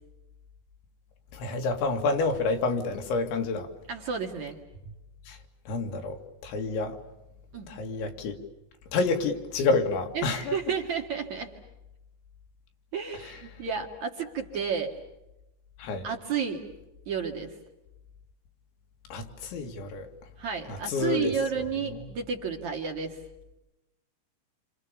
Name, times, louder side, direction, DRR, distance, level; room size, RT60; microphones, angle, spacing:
voice 1, 1.3-3.7 4.8-4.9 5.3-5.4 5.7-7.0 7.7-8.4 8.9-10.6 13.3-13.4 15.8-16.1 19.1-20.1 20.7-21.7 21.9-22.0, left 3 dB, 85° left, 4 dB, 4.5 m, -29 dB
voice 2, 3.9-4.6 7.5-7.7 10.1-11.5 12.9-14.9 16.0-16.6 17.1-17.5 20.4-23.2, right 6 dB, 50° right, 2 dB, 2.8 m, -31 dB
29.0 x 27.5 x 6.9 m, 0.95 s
omnidirectional pair, 5.2 m